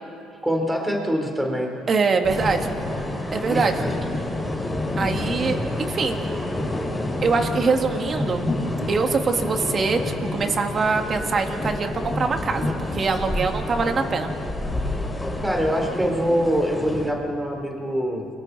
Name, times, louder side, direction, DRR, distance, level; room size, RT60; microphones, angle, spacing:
voice 1, 0.4-1.8 3.5-3.9 5.3-5.5 15.4-18.3, equal, 10° right, 2 dB, 3.8 m, -24 dB
voice 2, 1.9-2.7 3.3-3.7 5.0-6.2 7.2-8.4 8.9-10.0 10.3-14.3, right 4 dB, 40° right, 5 dB, 2.2 m, -23 dB
sound 1, 2.2-17.1, left 1 dB, 10° left, 5.7 m, -28 dB
29.5 x 22.5 x 4.2 m, 2.4 s
supercardioid pair, 70°, 0 cm